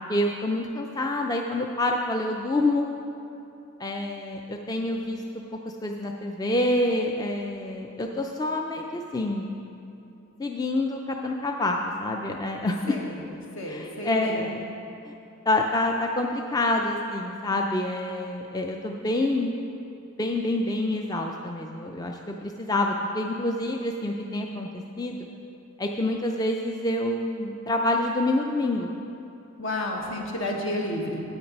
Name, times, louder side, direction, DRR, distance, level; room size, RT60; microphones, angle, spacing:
voice 1, 0.1-2.9 3.8-5.2 5.8-9.5 10.4-13.0 13.7-14.6 15.1-15.2 15.5-19.5 20.2-24.7 25.0-25.3 25.8-28.9, left 2 dB, 20° left, 2 dB, 0.3 m, -27 dB
voice 2, 12.9-13.2 13.6-14.4 29.6-31.2, left 1 dB, 70° left, 0 dB, 1.3 m, -31 dB
8.8 x 8.6 x 5.3 m, 2.8 s
head